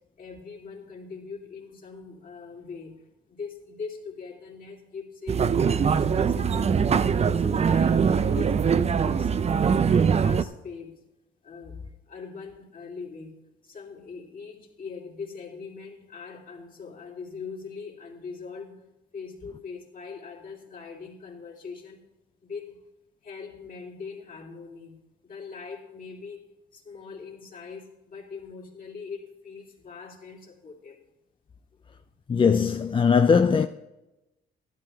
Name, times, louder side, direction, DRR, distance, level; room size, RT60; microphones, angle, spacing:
voice 1, 0.2-5.4 5.6-9.6 9.9-11.0 11.4-13.4 13.6-18.8 19.1-22.0 22.4-22.8 23.2-26.4 26.7-31.0, left 5 dB, 45° left, 2.8 m, -42 dB
sound 1, 5.3-10.4, right 6 dB, 35° right, 0.5 m, -22 dB
voice 2, 32.3-33.7, left 6 dB, 25° left, 0.4 m, -20 dB
12.5 x 12.0 x 3.3 m
cardioid pair, 90°, 20 cm